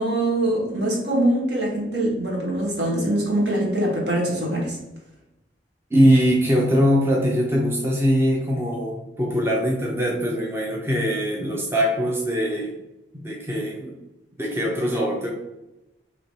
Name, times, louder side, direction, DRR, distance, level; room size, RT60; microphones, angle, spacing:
voice 1, 0.0-4.8, right 1 dB, 65° right, -2 dB, 1.3 m, -23 dB
voice 2, 5.9-12.7 13.1-13.9 14.4-15.3, equal, 15° right, -3 dB, 0.6 m, -22 dB
3.1 x 2.9 x 4.1 m, 0.94 s
head